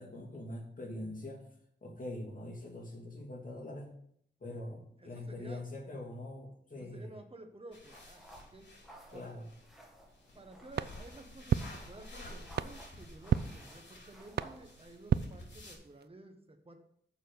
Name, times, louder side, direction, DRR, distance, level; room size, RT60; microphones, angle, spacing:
voice 1, 0.0-1.4 1.8-3.9 4.4-7.1 9.1-9.4, left 1 dB, 45° left, -1 dB, 2.6 m, -43 dB
voice 2, 5.0-5.6 6.7-8.7 9.1-9.3 10.3-16.8, right 2 dB, 30° right, 5 dB, 1.3 m, -53 dB
sound 1, 7.7-15.7, left 1 dB, 70° left, 3.2 m, -52 dB
sound 2, 7.9-15.1, right 1 dB, ahead, 2.0 m, -58 dB
sound 3, 10.7-16.1, right 7 dB, 60° right, 0.4 m, -36 dB
7.2 x 5.9 x 6.7 m, 0.68 s
wide cardioid pair, 115°, 19 cm